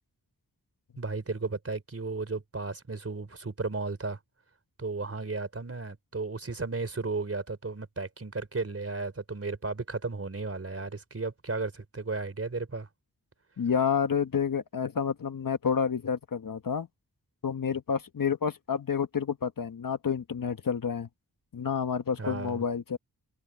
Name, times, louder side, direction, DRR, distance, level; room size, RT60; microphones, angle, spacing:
voice 1, 1.0-4.2 4.8-12.9 22.2-22.6, right 3 dB, 40° right, 4.0 m, -34 dB
voice 2, 13.6-16.9 17.4-21.1 21.5-23.0, left 6 dB, 60° left, 1.3 m, -29 dB
wide cardioid pair, 105°, 37 cm